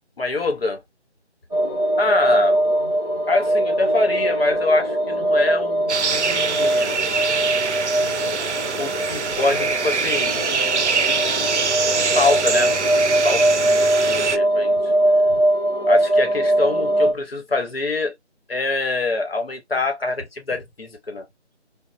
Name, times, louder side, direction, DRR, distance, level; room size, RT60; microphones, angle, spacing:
voice 1, 0.2-0.8 2.0-2.7 3.3-7.0 8.7-10.5 11.8-12.7 13.2-14.9 15.3-15.4 15.8-18.1 18.5-21.3, left 3 dB, 55° left, 0.9 m, -25 dB
sound 1, 1.5-17.1, right 1 dB, 20° left, 0.9 m, -21 dB
sound 2, 5.9-14.4, right 5 dB, 75° right, 0.5 m, -24 dB
3.1 x 2.0 x 2.4 m
figure-of-eight pair, 170°, 35 cm